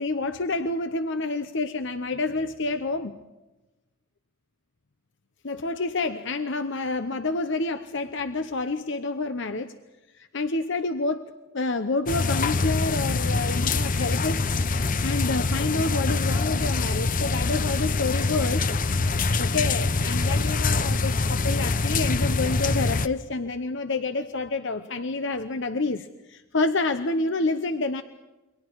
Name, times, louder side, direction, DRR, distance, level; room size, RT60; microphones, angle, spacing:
voice 1, 0.0-3.1 5.4-9.8 10.1-18.7 19.4-28.0, left 3 dB, 60° left, 9 dB, 0.9 m, -28 dB
sound 1, 12.1-23.1, left 3 dB, 40° left, 0.7 m, -24 dB
29.0 x 23.5 x 4.7 m, 1.1 s
head